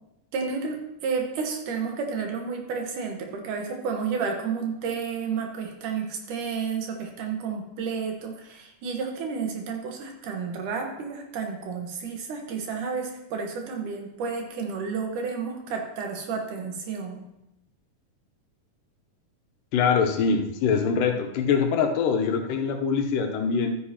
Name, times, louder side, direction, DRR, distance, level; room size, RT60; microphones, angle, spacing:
voice 1, 0.3-17.2, right 5 dB, 75° right, 2 dB, 2.8 m, -31 dB
voice 2, 19.7-23.7, left 6 dB, 85° left, 4 dB, 2.5 m, -23 dB
12.5 x 9.4 x 2.9 m, 0.87 s
omnidirectional pair, 3.8 m